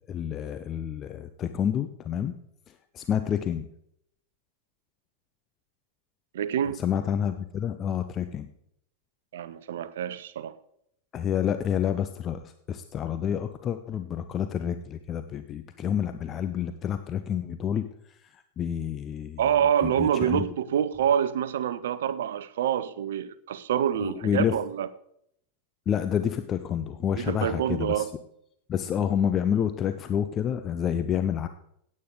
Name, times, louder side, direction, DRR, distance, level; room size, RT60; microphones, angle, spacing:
voice 1, 0.0-2.4 2.9-3.7 6.7-8.5 11.1-17.9 18.3-19.4 19.8-20.5 24.0-24.6 25.9-28.1 28.7-31.5, left 8 dB, 30° left, 0.6 m, -28 dB
voice 2, 6.3-6.8 9.3-10.6 19.4-24.9 27.2-28.1, right 9 dB, 60° right, 0.6 m, -26 dB
16.0 x 8.6 x 3.9 m
figure-of-eight pair, 90°, 0 cm